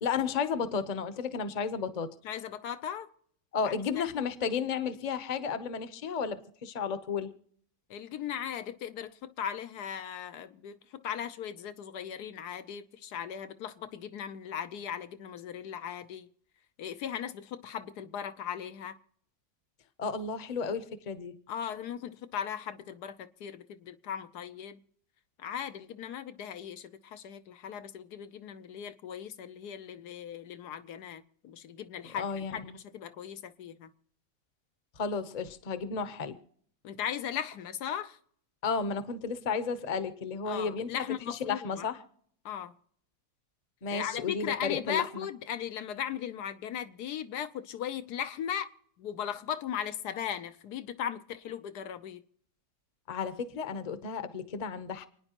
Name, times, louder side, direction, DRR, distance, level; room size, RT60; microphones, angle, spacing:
voice 1, 0.0-2.1 3.5-7.3 20.0-21.3 32.1-32.8 35.0-36.4 38.6-42.0 43.8-45.3 53.1-55.1, left 5 dB, 35° left, 0.8 m, -33 dB
voice 2, 2.2-3.1 3.6-3.7 7.9-16.3 16.8-19.0 21.5-24.8 25.4-33.9 36.8-38.2 40.4-41.9 42.4-42.7 43.9-48.7 49.0-52.2, left 9 dB, 80° left, 1.3 m, -38 dB
29.0 x 9.8 x 3.0 m
omnidirectional pair, 1.7 m